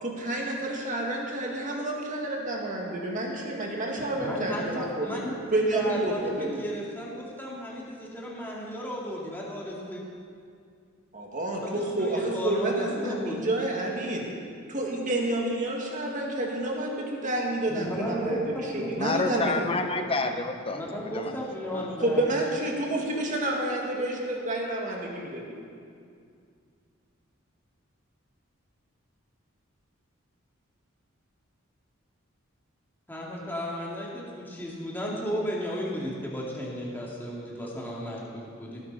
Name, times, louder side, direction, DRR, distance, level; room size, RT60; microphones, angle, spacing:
voice 1, 0.0-5.2 5.5-6.6 11.1-14.2 14.7-19.7 22.0-25.5, right 1 dB, 40° right, -1 dB, 2.1 m, -29 dB
voice 2, 4.1-5.3 5.7-10.0 12.0-13.4 17.7-18.4 18.7-18.9 20.7-22.2 33.1-38.8, equal, 10° left, -4 dB, 2.4 m, -34 dB
voice 3, 19.0-20.8 21.1-21.4 21.7-21.9, left 3 dB, 30° left, 6 dB, 0.9 m, -29 dB
18.5 x 9.7 x 4.3 m, 2.3 s
head